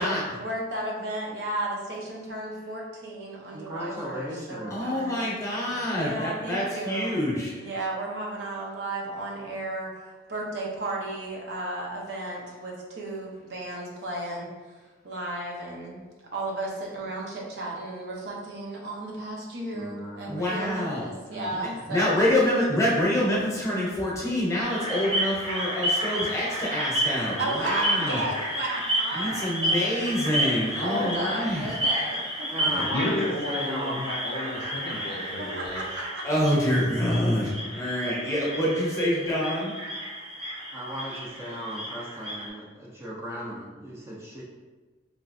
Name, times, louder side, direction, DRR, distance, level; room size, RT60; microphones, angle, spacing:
voice 1, 0.0-5.2 5.9-7.2 7.6-14.5 15.0-16.0 16.3-22.2 27.4-29.9 30.8-32.8 35.4-36.6, right 1 dB, 60° right, -2 dB, 0.6 m, -34 dB
voice 2, 3.5-4.8 5.7-5.8 19.7-20.5 21.3-21.6 32.5-34.0 40.7-44.4, equal, 15° right, -5 dB, 0.4 m, -36 dB
voice 3, 4.7-7.5 20.3-21.1 21.9-28.2 29.1-31.7 32.7-32.9 36.2-39.7, left 1 dB, 15° left, -6 dB, 0.8 m, -26 dB
sound 1, 24.6-42.5, right 1 dB, 30° right, 0.9 m, -31 dB
voice 4, 32.9-35.9, left 2 dB, 55° left, 2 dB, 0.4 m, -32 dB
3.3 x 2.9 x 2.5 m, 1.3 s
head